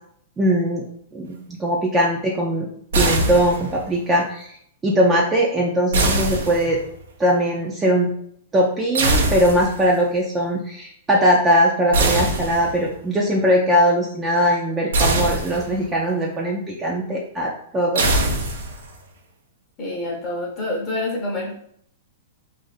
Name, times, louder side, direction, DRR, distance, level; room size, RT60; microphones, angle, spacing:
voice 1, 0.4-0.9 1.1-2.7 2.9-4.5 4.8-6.8 7.2-8.1 8.5-18.1, equal, 15° right, -2 dB, 0.5 m, -20 dB
sound 1, 2.9-3.9 5.9-7.0 8.9-9.9 11.9-12.9 14.9-15.9 18.0-19.0, right 2 dB, 80° right, 0.6 m, -22 dB
voice 2, 19.8-21.5, left 2 dB, 30° left, -1 dB, 0.7 m, -27 dB
2.5 x 2.5 x 4.0 m, 0.67 s
hypercardioid pair, 150°, 0 cm